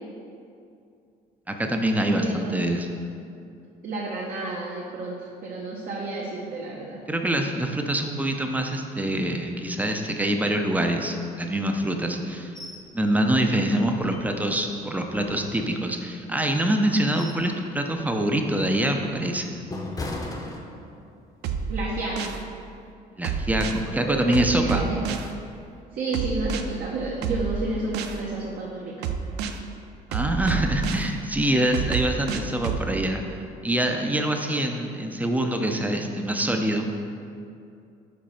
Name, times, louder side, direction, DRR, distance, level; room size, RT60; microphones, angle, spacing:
voice 1, 1.5-3.0 7.1-12.5 12.9-19.6 23.2-24.8 30.1-33.2 33.6-36.9, right 1 dB, 10° right, 4 dB, 0.5 m, -25 dB
voice 2, 2.1-2.6 3.8-7.0 21.7-22.4 23.9-25.0 25.9-29.1, right 2 dB, 55° right, -4 dB, 0.9 m, -31 dB
sound 1, 12.5-12.9 13.2-13.3 13.8-14.6 15.1-16.1 16.7-17.5 17.9-18.2 18.7-21.2 21.5-21.8, left 2 dB, 20° left, 0.8 m, -37 dB
sound 2, 21.4-22.4 23.2-23.8 24.3-25.3 26.1-26.6 27.2-28.2 29.0-29.6 30.1-31.1 31.7-32.8, right 6 dB, 75° right, 0.5 m, -29 dB
5.2 x 4.0 x 5.7 m, 2.5 s
cardioid pair, 110°, 17 cm